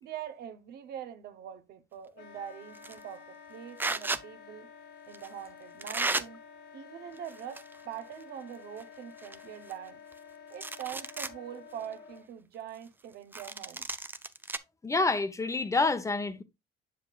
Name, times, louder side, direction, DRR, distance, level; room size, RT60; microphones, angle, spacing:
voice 1, 0.0-4.7 5.1-6.4 6.7-10.0 10.5-13.9, right 9 dB, 70° right, 0.9 m, -43 dB
Wind instrument woodwind instrument, 2.1-12.3, left 7 dB, 75° left, 1.6 m, -51 dB
sound 1, 2.7-3.0 3.8-4.2 5.1-5.3 5.8-6.2 7.2-7.8 8.1-8.2 8.8-8.9 9.2-10.2 10.5-11.4 11.8-11.9 13.3-14.6, right 3 dB, 10° right, 0.4 m, -34 dB
voice 2, 14.8-16.4, left 3 dB, 20° left, 0.8 m, -28 dB
7.4 x 7.1 x 2.4 m
cardioid pair, 110°, 17 cm